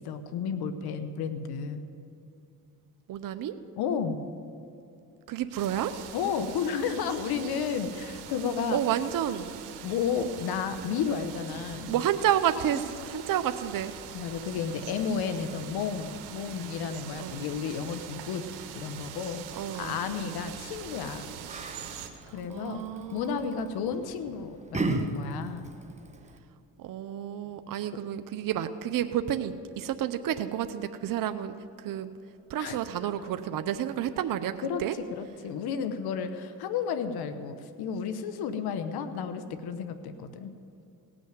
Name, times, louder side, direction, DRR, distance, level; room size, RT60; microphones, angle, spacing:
voice 1, 0.0-1.8 3.8-4.2 6.1-8.8 9.8-11.9 14.1-18.4 18.7-21.3 22.3-22.8 23.1-25.7 32.6-32.8 34.7-34.8 35.1-40.5, left 6 dB, 75° left, 9 dB, 1.1 m, -32 dB
voice 2, 3.1-3.6 5.3-5.9 8.7-9.6 10.8-10.9 11.9-13.9 17.2-17.4 19.5-20.5 22.1-24.0 26.8-32.1 32.5-35.0, right 10 dB, 60° right, 10 dB, 0.8 m, -31 dB
sound 1, 5.6-22.1, right 8 dB, 90° right, 1.3 m, -43 dB
Yell, 20.9-26.4, right 3 dB, 20° right, 1.3 m, -37 dB
17.5 x 6.3 x 9.3 m, 2.7 s
supercardioid pair, 75°, 38 cm